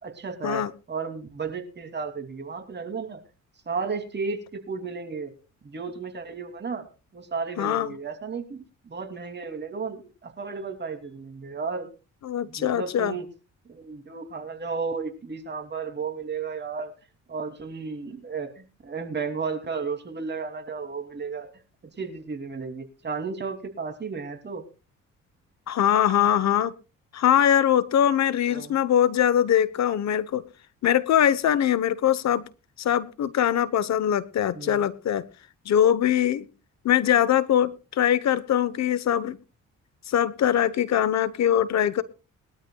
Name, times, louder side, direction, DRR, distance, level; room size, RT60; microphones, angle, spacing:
voice 1, 0.0-3.2 3.7-5.3 5.6-6.9 7.1-11.9 12.5-13.3 13.7-16.9 17.3-21.5 22.0-24.6 28.5-28.7 32.3-32.4 34.5-34.8, right 5 dB, 35° right, 6 dB, 2.8 m, -33 dB
voice 2, 7.6-8.0 12.2-13.1 25.7-26.7 27.1-30.4 30.8-32.4 32.8-35.2 35.7-36.5 36.8-39.4 40.1-42.0, left 10 dB, 65° left, 16 dB, 1.0 m, -22 dB
22.0 x 12.5 x 2.3 m, 0.32 s
cardioid pair, 90°, 30 cm